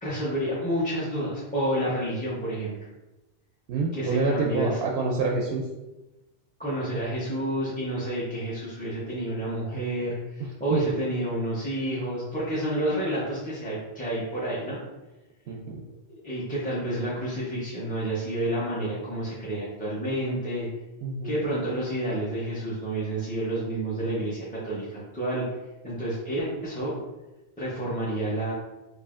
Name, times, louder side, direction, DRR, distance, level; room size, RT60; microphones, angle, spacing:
voice 1, 0.0-2.7 3.9-4.8 6.6-14.8 16.1-20.7 21.2-25.4 25.8-27.0 27.6-28.5, right 1 dB, 10° left, -9 dB, 0.7 m, -29 dB
voice 2, 3.7-5.6 15.5-15.8 21.0-21.4, right 3 dB, 75° right, -1 dB, 0.8 m, -27 dB
4.8 x 2.6 x 2.5 m, 1.0 s
omnidirectional pair, 1.1 m